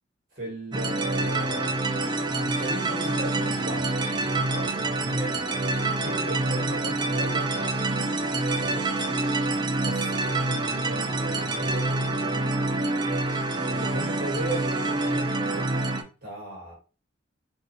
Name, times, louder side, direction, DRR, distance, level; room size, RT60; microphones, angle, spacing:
voice 1, 0.3-7.7 8.6-8.9 9.7-12.5 13.7-16.7, right 1 dB, 45° right, -2 dB, 2.2 m, -37 dB
sound 1, 0.7-16.0, right 2 dB, 20° right, 0.4 m, -27 dB
4.4 x 2.8 x 3.4 m, 0.33 s
head